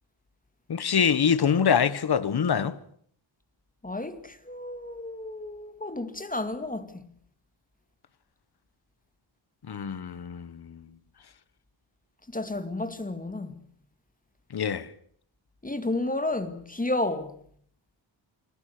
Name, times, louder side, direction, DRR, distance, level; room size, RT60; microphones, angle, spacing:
voice 1, 0.7-2.8 9.7-10.9 14.5-14.9, left 7 dB, 55° left, 1.5 m, -25 dB
voice 2, 3.8-7.1 12.3-13.6 15.6-17.4, left 2 dB, 20° left, 2.2 m, -32 dB
29.5 x 21.0 x 6.8 m
wide cardioid pair, 125°, 46 cm